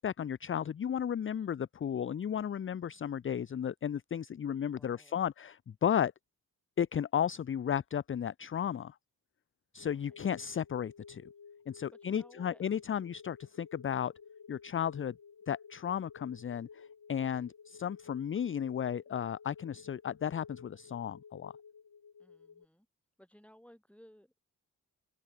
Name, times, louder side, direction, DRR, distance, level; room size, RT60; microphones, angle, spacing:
voice 1, 0.0-6.1 6.8-9.0 9.7-11.3 11.7-14.1 14.5-15.1 15.5-21.5, left 8 dB, 35° left, 0.4 m, -34 dB
voice 2, 4.6-5.3 9.9-10.3 11.9-12.6 22.2-22.9 23.2-24.4, equal, 5° left, 6.1 m, -59 dB
sound 1, 9.8-22.7, left 6 dB, 70° left, 3.8 m, -54 dB
cardioid pair, 40°, 37 cm